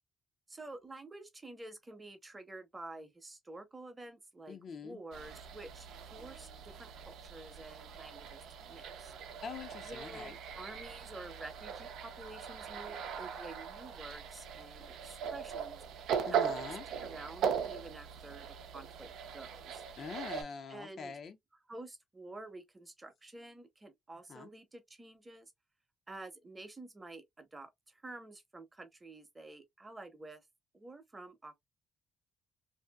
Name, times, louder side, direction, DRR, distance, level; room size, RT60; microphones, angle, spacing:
voice 1, 0.5-4.6 4.8-9.1 9.8-15.8 16.3-16.7 17.0-19.8 20.7-21.2 21.7-25.5 26.1-30.4 30.7-31.5, right 2 dB, 20° right, 0.8 m, -50 dB
voice 2, 4.5-5.0 9.4-10.4 16.2-16.9 20.0-21.4 24.3-24.5, left 5 dB, 60° left, 0.6 m, -44 dB
sound 1, 5.1-20.4, right 7 dB, 85° right, 0.5 m, -40 dB
2.7 x 2.5 x 2.2 m
cardioid pair, 90°, 0 cm